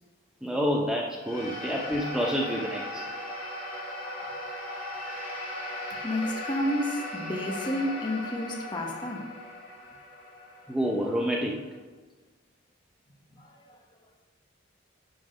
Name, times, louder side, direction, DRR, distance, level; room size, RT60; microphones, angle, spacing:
voice 1, 0.4-3.0 10.7-11.6, equal, 5° right, 0.6 m, -28 dB
sound 1, 1.2-11.7, left 1 dB, 45° left, 2.1 m, -38 dB
voice 2, 6.0-9.3 13.3-13.6, left 1 dB, 25° left, 1.0 m, -30 dB
11.0 x 3.9 x 5.1 m
head